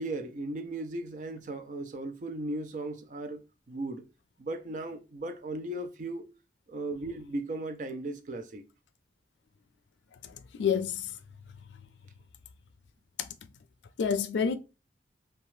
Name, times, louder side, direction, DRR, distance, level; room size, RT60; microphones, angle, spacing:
voice 1, 0.0-3.4 3.7-4.0 4.4-6.3 6.7-8.6, right 2 dB, 45° right, 0.4 m, -36 dB
voice 2, 10.2-11.2 13.2-13.3 14.0-14.6, left 7 dB, 85° left, 0.4 m, -29 dB
2.7 x 2.3 x 3.1 m
head